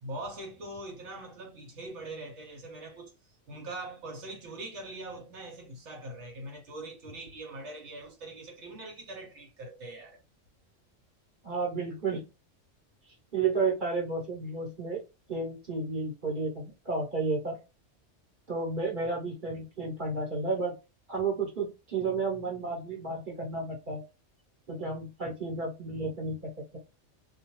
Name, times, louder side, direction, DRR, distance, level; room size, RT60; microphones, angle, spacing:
voice 1, 0.0-3.1 3.5-10.2, right 2 dB, 70° right, 1.0 m, -42 dB
voice 2, 11.4-12.3 13.3-15.0 15.3-17.6 18.5-20.8 21.1-24.0 24.7-26.8, right 4 dB, 45° right, 1.0 m, -32 dB
2.3 x 2.3 x 2.9 m
omnidirectional pair, 1.3 m